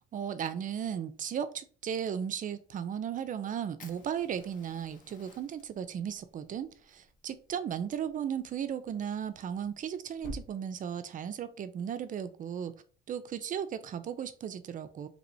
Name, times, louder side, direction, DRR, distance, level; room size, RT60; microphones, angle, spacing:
voice 1, 0.1-12.7 13.1-15.1, right 8 dB, 40° right, 0.4 m, -36 dB
Fire, 3.8-10.4, left 2 dB, 40° left, 0.8 m, -52 dB
3.0 x 2.9 x 2.6 m
supercardioid pair, 90°, 21 cm